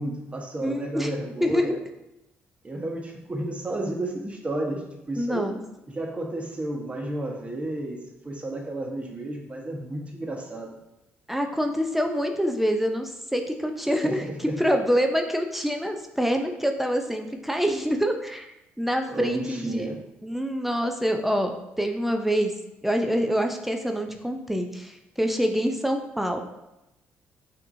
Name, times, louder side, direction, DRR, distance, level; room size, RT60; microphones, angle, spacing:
voice 1, 0.0-1.8 2.6-5.6 5.9-10.7 14.0-14.6 19.1-20.0, right 1 dB, 25° right, 0 dB, 1.1 m, -32 dB
voice 2, 0.6-1.1 1.4-1.7 5.2-5.6 11.3-14.3 14.6-19.9 20.2-22.5 22.8-26.4, equal, 5° right, 4 dB, 0.5 m, -26 dB
5.9 x 2.9 x 2.7 m, 0.91 s
supercardioid pair, 60°, 5 cm